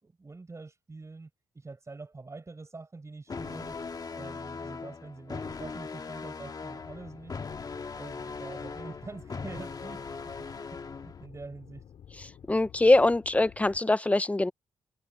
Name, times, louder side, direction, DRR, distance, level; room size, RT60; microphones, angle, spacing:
voice 1, 0.0-3.8 4.1-7.4 7.9-11.8, right 3 dB, 30° right, 7.1 m, -45 dB
sound 1, 3.3-11.3, left 4 dB, 40° left, 1.8 m, -39 dB
sound 2, 6.8-13.8, left 9 dB, 75° left, 3.4 m, -51 dB
voice 2, 12.5-14.5, left 2 dB, 15° left, 0.8 m, -23 dB
cardioid pair, 70°, 10 cm